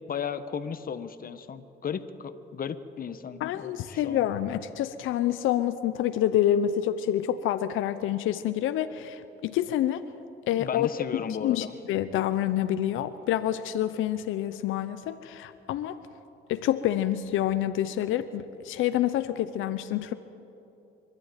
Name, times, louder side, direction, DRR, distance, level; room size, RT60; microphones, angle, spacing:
voice 1, 0.1-4.2 10.6-11.7, left 7 dB, 45° left, 11 dB, 1.1 m, -35 dB
voice 2, 3.4-10.0 10.5-10.9 11.4-16.0 16.5-20.1, left 11 dB, 90° left, 11 dB, 0.7 m, -27 dB
25.0 x 11.5 x 9.0 m, 2.8 s
cardioid pair, 90°, 20 cm